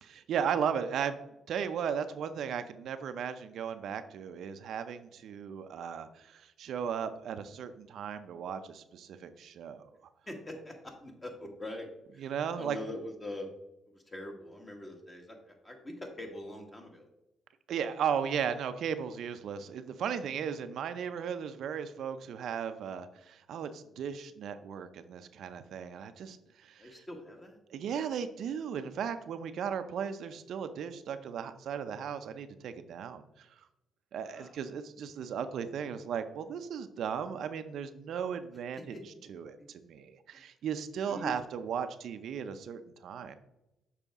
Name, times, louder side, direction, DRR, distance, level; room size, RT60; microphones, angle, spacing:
voice 1, 0.0-1.2 1.5-9.9 12.2-12.8 17.7-26.9 27.7-33.5 34.1-39.0 39.3-43.3, right 7 dB, 70° right, 9 dB, 0.5 m, -36 dB
voice 2, 10.3-11.9 12.1-13.5 13.9-17.1 26.8-27.6 34.3-34.6 38.7-39.0 39.6-39.7 40.3-40.5 41.0-41.3, left 1 dB, 20° left, 2 dB, 1.6 m, -43 dB
6.9 x 4.8 x 3.6 m, 0.91 s
cardioid pair, 90°, 0 cm